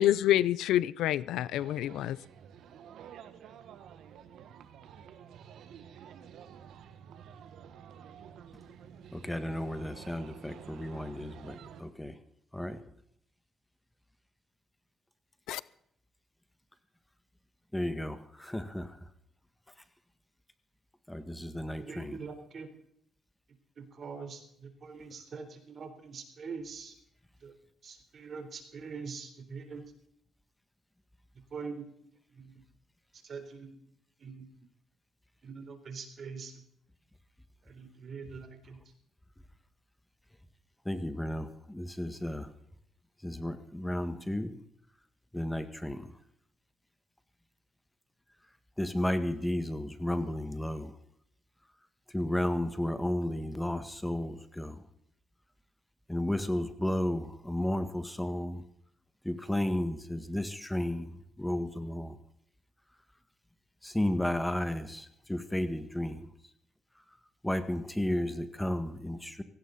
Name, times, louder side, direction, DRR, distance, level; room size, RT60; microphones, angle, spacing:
voice 1, 0.0-2.2 15.5-15.6, left 13 dB, 90° left, 0.5 m, -27 dB
sound 1, 1.6-11.8, right 8 dB, 75° right, 1.4 m, -50 dB
voice 2, 9.1-12.2 12.5-12.8 17.7-19.1 21.1-22.2 40.9-42.5 43.2-44.6 45.3-46.2 48.8-51.0 52.1-54.8 56.1-58.6 59.2-62.2 63.8-66.3 67.4-69.4, left 1 dB, 5° left, 1.7 m, -33 dB
voice 3, 21.7-22.7 23.8-26.9 27.4-27.5 27.8-29.8 31.5-31.9 32.4-32.5 33.2-33.7 34.2-34.5 35.4-36.5 37.7-38.8, right 5 dB, 50° right, 3.8 m, -43 dB
17.0 x 16.5 x 4.1 m
cardioid pair, 90°, 0 cm